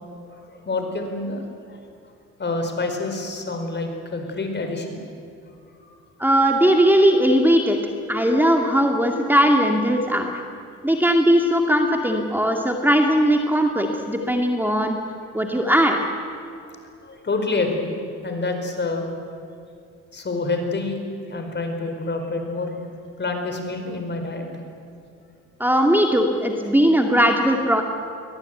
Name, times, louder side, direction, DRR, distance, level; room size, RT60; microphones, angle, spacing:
voice 1, 0.3-1.8 2.4-5.0 5.8-5.9 16.6-17.9 18.2-19.1 20.1-21.0 21.3-22.7 23.2-24.5, left 3 dB, 35° left, 5 dB, 4.7 m, -27 dB
voice 2, 6.2-7.8 8.1-10.3 10.8-15.0 15.3-16.0 25.6-27.8, equal, 5° right, 3 dB, 2.1 m, -19 dB
23.0 x 18.0 x 9.2 m, 2.4 s
cardioid pair, 90°, 30 cm